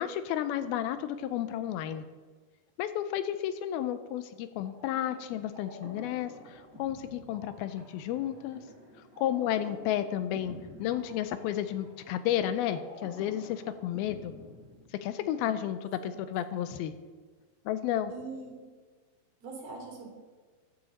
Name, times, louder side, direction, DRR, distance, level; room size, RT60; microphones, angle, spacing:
voice 1, 0.0-2.1 2.8-8.6 9.2-14.3 15.0-16.9 17.7-18.1, left 11 dB, 80° left, 11 dB, 2.4 m, -32 dB
sound 1, 4.6-15.3, left 1 dB, 25° left, 3.7 m, -50 dB
voice 2, 18.1-18.6 19.4-20.1, right 3 dB, 70° right, -2 dB, 5.1 m, -42 dB
13.5 x 10.5 x 4.1 m, 1.4 s
omnidirectional pair, 4.5 m